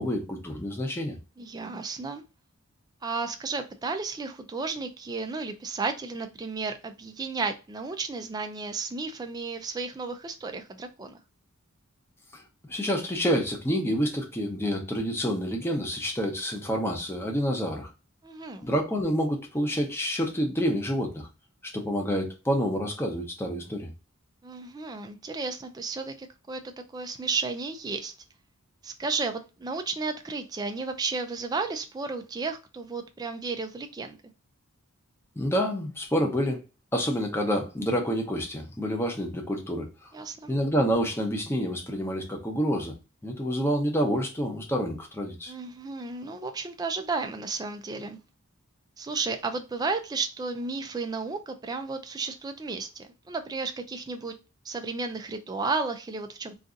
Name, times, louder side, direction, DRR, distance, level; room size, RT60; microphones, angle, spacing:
voice 1, 0.0-1.2 12.3-17.9 18.6-21.3 21.6-23.9 35.4-36.6 36.9-39.9 40.5-42.9 43.2-45.5, equal, 10° left, 0.6 m, -28 dB
voice 2, 1.4-2.2 3.0-11.2 18.2-18.7 24.4-26.6 26.9-28.1 28.8-34.2 40.1-40.5 45.5-48.2 49.0-54.3 54.6-56.5, right 4 dB, 20° right, 0.3 m, -33 dB
2.6 x 2.4 x 3.7 m
head